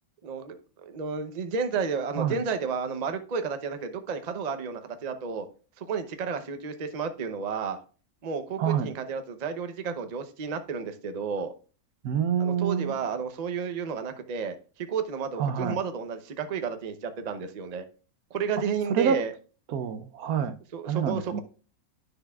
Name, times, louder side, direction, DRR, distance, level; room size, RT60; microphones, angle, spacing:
voice 1, 0.2-0.6 0.9-5.5 5.8-7.8 8.2-11.5 12.4-17.8 18.3-19.3 20.7-21.4, right 6 dB, 40° right, 0.6 m, -32 dB
voice 2, 12.0-12.9 15.4-15.8 18.9-19.2 19.7-20.5 20.8-21.4, right 8 dB, 75° right, 1.1 m, -27 dB
9.7 x 6.6 x 2.3 m
omnidirectional pair, 1.6 m